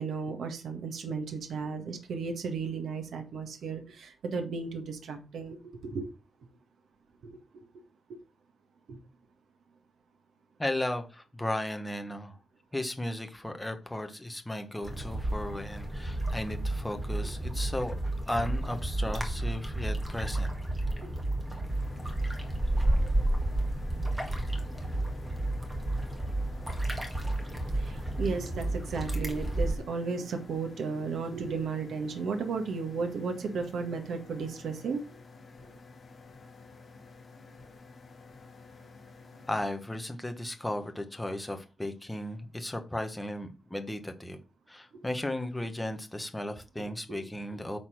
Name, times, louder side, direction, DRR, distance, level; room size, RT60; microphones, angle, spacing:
voice 1, 0.0-6.1 7.2-7.3 8.1-8.2 8.9-9.0 27.7-35.0 44.9-45.0 47.1-47.2, right 4 dB, 60° right, 5 dB, 1.5 m, -34 dB
voice 2, 10.6-12.4 12.7-18.0 18.3-20.5 39.5-44.4 44.7-47.8, left 1 dB, 5° left, 6 dB, 1.2 m, -35 dB
sound 1, 14.8-29.7, right 1 dB, 10° right, 1.7 m, -31 dB
sound 2, 21.7-39.7, left 4 dB, 35° left, 2.6 m, -52 dB
8.8 x 4.1 x 6.4 m, 0.32 s
wide cardioid pair, 175°, 0 cm